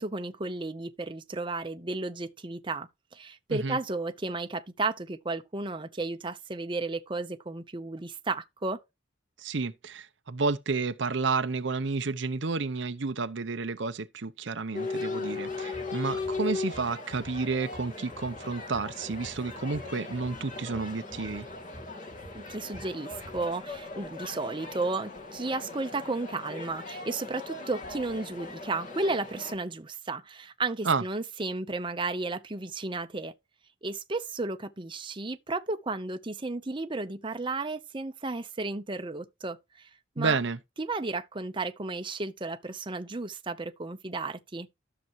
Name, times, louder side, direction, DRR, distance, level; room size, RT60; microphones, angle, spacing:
voice 1, 0.0-8.8 22.3-33.3 33.8-39.9 40.2-40.4 40.8-44.7, right 3 dB, 25° right, 0.8 m, -33 dB
voice 2, 9.4-21.5 30.8-31.0 40.2-40.6, right 4 dB, 65° right, 0.7 m, -31 dB
sound 1, 14.7-29.6, left 3 dB, 40° left, 2.6 m, -38 dB
sound 2, 15.5-23.4, right 1 dB, 20° left, 1.6 m, -49 dB
13.0 x 6.8 x 3.1 m
head